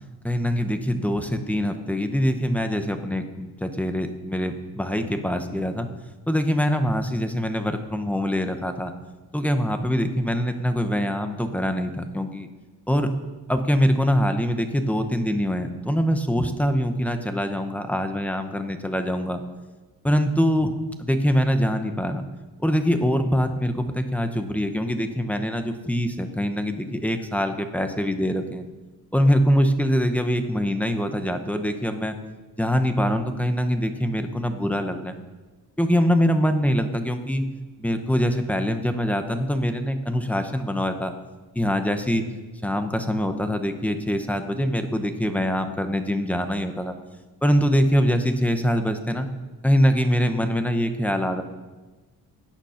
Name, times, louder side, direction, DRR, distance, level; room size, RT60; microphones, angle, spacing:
voice 1, 0.2-5.9 6.3-8.9 9.3-12.5 12.9-13.1 13.5-19.4 20.0-20.7 21.0-22.2 22.6-28.7 29.1-32.2 32.6-35.1 35.8-37.5 37.8-41.1 41.5-42.2 42.6-46.9 47.4-49.3 49.6-51.4, equal, 5° left, 7 dB, 0.8 m, -23 dB
17.0 x 9.0 x 5.7 m, 1.2 s
cardioid pair, 180°, 39 cm